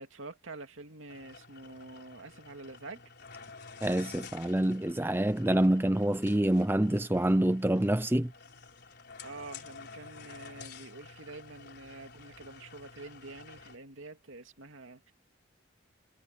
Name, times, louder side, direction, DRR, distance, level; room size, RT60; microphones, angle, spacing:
voice 1, 0.0-3.0 9.2-15.1, right 2 dB, 75° right, 2.5 m, -47 dB
sound 1, 1.1-13.8, left 5 dB, 50° left, 4.7 m, -50 dB
voice 2, 3.8-8.3, right 1 dB, 10° right, 0.5 m, -26 dB
head